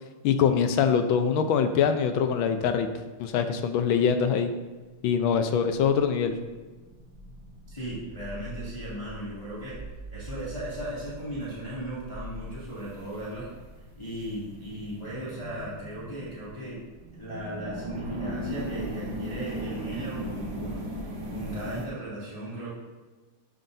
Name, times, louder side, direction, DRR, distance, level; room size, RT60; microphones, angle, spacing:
voice 1, 0.2-2.9 3.2-4.5 5.0-6.3, left 7 dB, 75° left, 8 dB, 1.4 m, -23 dB
sound 1, 4.9-21.9, right 1 dB, 55° right, 1.8 m, -39 dB
voice 2, 7.7-9.8 10.1-13.5 14.0-16.8 17.1-20.8 21.3-22.7, right 1 dB, 15° left, -9 dB, 2.1 m, -37 dB
13.0 x 5.6 x 2.6 m, 1.3 s
omnidirectional pair, 2.4 m